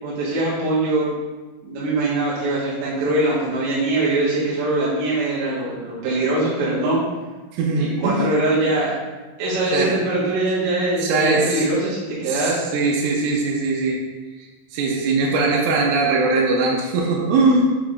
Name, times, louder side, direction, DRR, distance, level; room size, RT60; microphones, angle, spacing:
voice 1, 0.0-1.1 1.6-7.0 7.8-8.9 9.4-12.7, right 2 dB, 70° right, -9 dB, 3.3 m, -22 dB
voice 2, 7.5-8.2 9.7-9.9 11.0-11.6 12.2-14.0 14.4-17.6, right 3 dB, 90° right, -3 dB, 3.3 m, -21 dB
7.7 x 4.9 x 2.5 m, 1.2 s
omnidirectional pair, 5.9 m